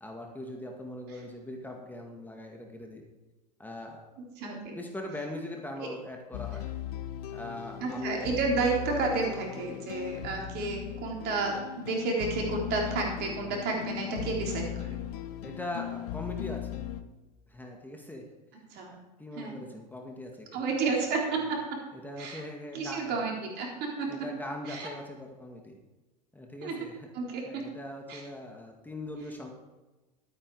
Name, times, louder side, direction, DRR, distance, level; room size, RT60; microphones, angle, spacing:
voice 1, 0.0-3.0 3.6-4.0 4.4-6.7 7.3-8.3 15.4-16.8 17.5-18.3 19.2-20.8 21.4-21.5 21.9-23.2 24.1-25.8 26.3-27.1 27.4-29.5, left 1 dB, 10° left, 1 dB, 2.0 m, -41 dB
voice 2, 4.2-4.8 7.8-15.0 18.7-18.9 19.4-19.6 20.5-21.8 22.2-22.4 22.7-24.3 24.7-24.9 26.6-26.8 27.1-27.7 28.1-28.2, right 4 dB, 55° right, 0 dB, 3.8 m, -31 dB
sound 1, 6.3-17.0, left 12 dB, 70° left, 0.9 m, -38 dB
12.5 x 9.3 x 4.9 m, 1.1 s
hypercardioid pair, 90°, 21 cm